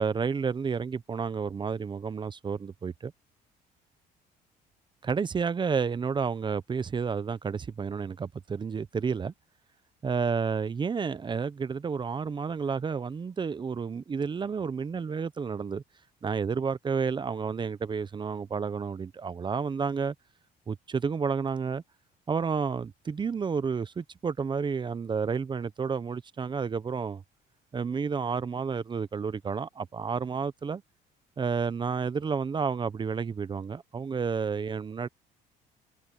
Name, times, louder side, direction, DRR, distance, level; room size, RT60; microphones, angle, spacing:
voice 1, 0.0-3.1 5.0-9.3 10.0-15.8 16.2-20.1 20.7-21.8 22.3-27.2 27.7-30.8 31.4-35.1, right 5 dB, 30° right, 0.7 m, -30 dB
cardioid pair, 110°, 17 cm